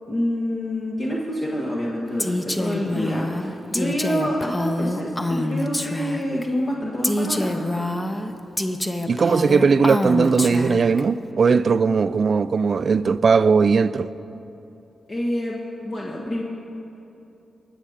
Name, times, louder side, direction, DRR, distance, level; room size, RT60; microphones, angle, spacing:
voice 1, 0.1-7.6 15.1-15.6 15.8-16.4, equal, 45° left, 1.4 m, -27 dB
Female speech woman speaking, 2.2-6.4 7.0-11.0, left 1 dB, 20° left, 0.8 m, -26 dB
voice 2, 9.1-14.1, right 5 dB, 60° right, 0.3 m, -18 dB
19.0 x 6.6 x 5.0 m
supercardioid pair, 45°, 0 cm